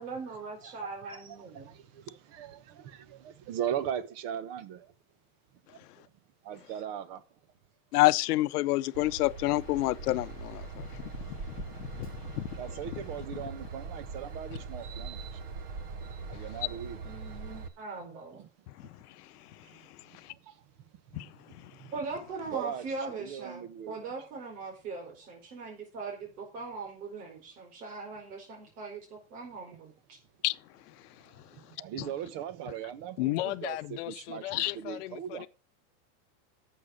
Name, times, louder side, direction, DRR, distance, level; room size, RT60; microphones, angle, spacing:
voice 1, 0.0-1.7 17.0-18.4 21.9-30.2, right 4 dB, 80° right, 5.0 m, -40 dB
voice 2, 1.1-4.9 5.7-5.8 6.4-7.2 11.1-11.3 12.5-15.4 16.1-17.0 18.4-18.5 18.8-18.9 19.6-19.9 20.3-20.6 21.1-21.9 22.5-24.1 31.5-33.8 34.1-35.5, right 9 dB, 40° right, 1.1 m, -39 dB
voice 3, 7.9-10.9 11.3-11.4 11.9-12.1 12.4-12.5 21.1-21.3 30.4-30.5 34.5-34.7, left 18 dB, 85° left, 0.7 m, -27 dB
Train / Engine, 8.9-17.7, right 4 dB, 20° right, 0.7 m, -42 dB
voice 4, 33.2-35.5, left 17 dB, 50° left, 0.6 m, -34 dB
11.5 x 7.6 x 5.2 m
supercardioid pair, 175°, 45 cm